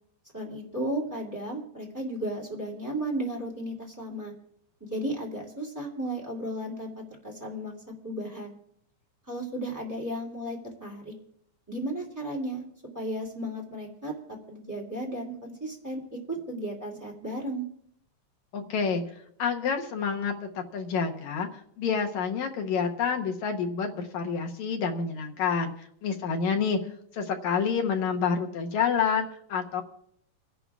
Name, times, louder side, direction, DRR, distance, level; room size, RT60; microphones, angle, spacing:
voice 1, 0.3-4.3 4.9-7.7 8.0-8.5 9.3-11.1 11.7-12.6 12.9-14.1 14.5-16.0 16.3-17.6, right 1 dB, 5° right, -3 dB, 2.0 m, -34 dB
voice 2, 18.5-19.0 19.4-21.5 21.8-25.7 26.0-26.8 27.1-29.8, left 6 dB, 65° left, 3 dB, 2.1 m, -28 dB
30.0 x 11.0 x 2.4 m, 0.69 s
omnidirectional pair, 4.0 m